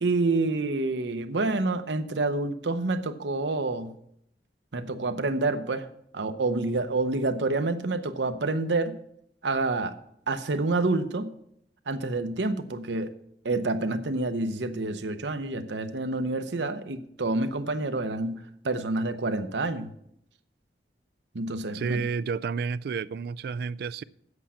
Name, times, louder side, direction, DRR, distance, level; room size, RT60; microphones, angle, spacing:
voice 1, 0.0-3.9 4.7-5.9 6.1-9.0 9.4-10.0 10.3-11.3 11.9-13.1 13.4-19.9 21.3-22.1, right 2 dB, 85° right, 0.8 m, -28 dB
voice 2, 21.7-24.0, right 5 dB, 60° right, 0.3 m, -30 dB
8.5 x 8.1 x 5.6 m
head